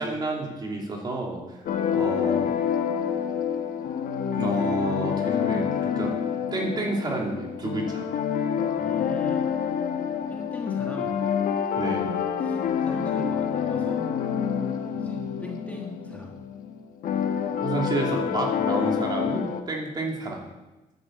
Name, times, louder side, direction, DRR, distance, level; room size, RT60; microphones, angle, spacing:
voice 1, 0.0-1.4 1.9-2.5 4.3-6.1 6.5-8.0 11.7-12.1 17.6-20.4, right 2 dB, 30° right, 0 dB, 2.6 m, -30 dB
sound 1, 1.7-19.6, left 8 dB, 80° left, 1.1 m, -27 dB
voice 2, 8.8-9.4 10.3-11.2 12.4-14.1 14.9-16.3, left 1 dB, 10° left, -1 dB, 1.3 m, -40 dB
11.0 x 8.8 x 7.5 m, 1.1 s
wide cardioid pair, 170°, 14 cm